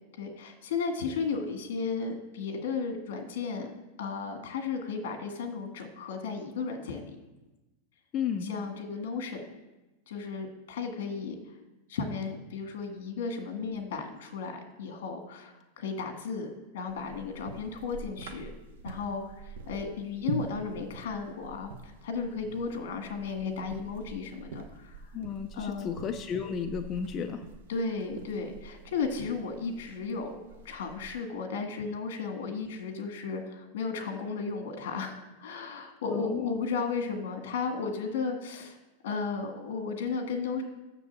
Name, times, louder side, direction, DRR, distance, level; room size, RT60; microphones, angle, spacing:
voice 1, 0.2-3.7 4.0-7.2 8.4-9.5 10.1-11.4 11.9-18.5 18.8-25.0 25.5-25.9 27.7-30.3 30.6-38.8 39.0-40.6, left 5 dB, 70° left, 5 dB, 1.8 m, -34 dB
voice 2, 8.1-8.5 25.1-27.4 36.1-36.6, left 7 dB, 20° left, 5 dB, 0.4 m, -33 dB
sound 1, 16.9-31.2, right 4 dB, 80° right, 1.0 m, -44 dB
6.8 x 6.8 x 7.3 m, 1.1 s
supercardioid pair, 175°, 0 cm